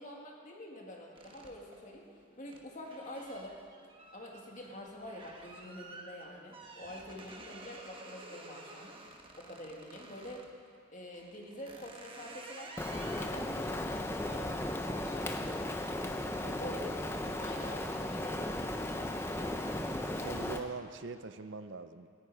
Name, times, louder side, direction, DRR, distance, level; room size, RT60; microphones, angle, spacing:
voice 1, 0.0-2.1 2.4-3.6 4.1-8.9 9.4-10.5 10.9-15.9 16.6-17.0 17.3-18.4, left 1 dB, 35° left, -1 dB, 2.2 m, -46 dB
sound 1, 1.1-10.5 11.1-17.6 18.0-18.4 18.7-20.5, right 2 dB, 25° right, 1.3 m, -53 dB
Rain, 12.8-20.6, left 1 dB, 10° left, 0.6 m, -36 dB
voice 2, 16.4-16.7 20.2-22.1, right 4 dB, 55° right, 10 dB, 0.6 m, -43 dB
18.0 x 15.0 x 4.9 m, 2.2 s
head